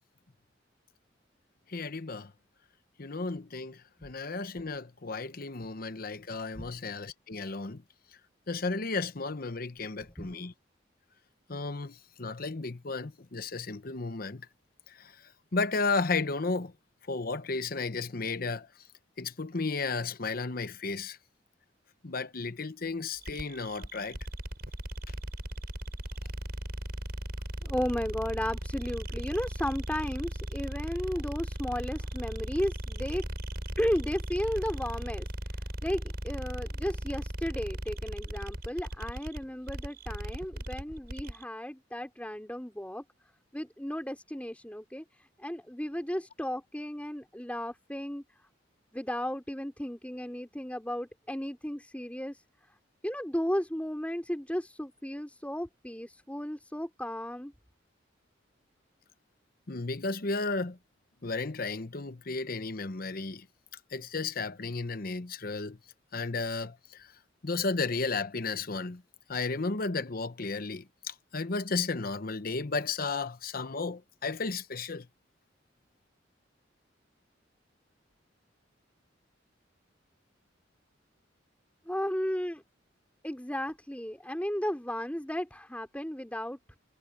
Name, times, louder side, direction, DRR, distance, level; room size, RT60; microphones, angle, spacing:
voice 1, 1.7-2.3 3.0-7.8 8.5-10.5 11.5-14.5 14.9-15.1 15.5-16.7 17.1-18.7 19.2-21.2 22.0-24.2 59.7-60.8 61.2-63.5 63.9-65.8 66.1-67.1 67.4-69.0 69.3-75.1, left 3 dB, 50° left, 0.9 m, -33 dB
voice 2, 10.0-10.4 27.6-33.3 33.8-35.3 35.8-43.0 43.5-48.2 48.9-52.4 53.0-57.5 81.9-82.6 83.2-86.6, equal, 10° left, 4.3 m, -34 dB
sound 1, 23.2-41.4, right 1 dB, 55° right, 6.9 m, -37 dB
head